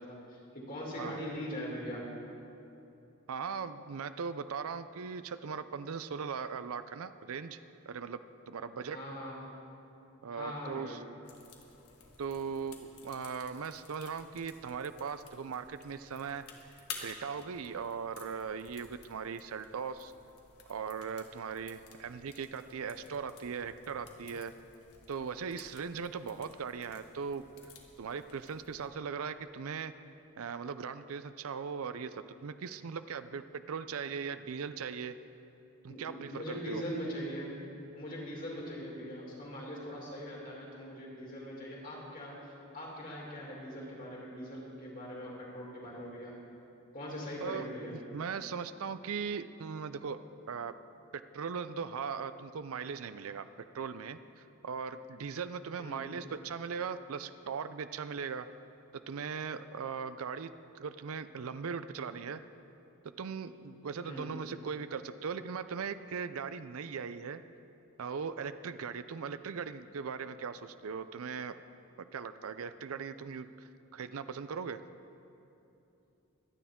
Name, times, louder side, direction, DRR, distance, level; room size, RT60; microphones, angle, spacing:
voice 1, 0.0-2.1 8.9-9.4 10.3-11.0 35.9-37.6 37.9-46.3 46.9-47.9 55.8-56.0 64.0-64.3, equal, 40° left, -4 dB, 2.7 m, -41 dB
voice 2, 3.3-7.6 7.9-8.2 8.5-9.0 10.2-11.0 12.2-16.4 17.0-20.1 20.7-24.5 25.1-27.4 28.0-29.9 30.4-35.1 35.8-36.8 47.4-50.2 50.5-50.7 51.1-53.5 53.7-58.5 59.1-62.4 63.2-67.4 68.0-71.5 72.1-74.8, right 6 dB, 75° right, 12 dB, 0.5 m, -39 dB
sound 1, 11.2-28.9, left 5 dB, 85° left, 1.5 m, -53 dB
23.5 x 9.4 x 3.7 m, 2.8 s
head